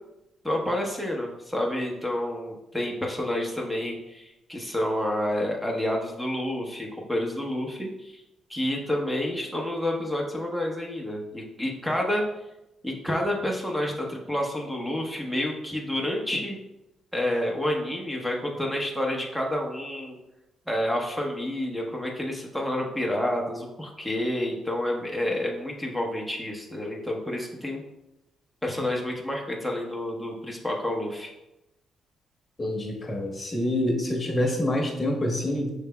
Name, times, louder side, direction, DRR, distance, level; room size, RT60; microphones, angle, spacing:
voice 1, 0.4-8.2 8.5-12.2 12.8-16.6 17.1-20.1 20.7-27.8 28.6-31.3, left 1 dB, ahead, 0 dB, 0.9 m, -29 dB
voice 2, 32.6-35.7, left 1 dB, 35° left, 1 dB, 1.0 m, -26 dB
5.6 x 3.2 x 2.2 m, 0.93 s
supercardioid pair, 60°, 0 cm